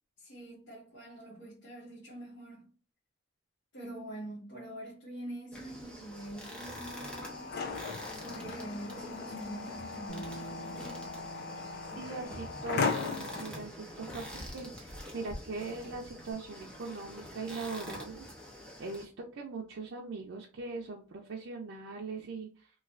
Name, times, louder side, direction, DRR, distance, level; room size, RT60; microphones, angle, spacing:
voice 1, 0.2-2.7 3.7-7.6 8.1-10.3, right 1 dB, 75° left, 1.2 m, -45 dB
sound 1, 5.5-19.0, equal, 5° left, 0.8 m, -46 dB
sound 2, 6.6-13.4, left 4 dB, 55° left, 0.5 m, -37 dB
Bass guitar, 10.1-16.3, right 3 dB, 35° left, 1.0 m, -51 dB
voice 2, 12.0-18.3 18.8-22.7, right 4 dB, 80° right, 0.5 m, -41 dB
3.1 x 2.3 x 2.5 m
head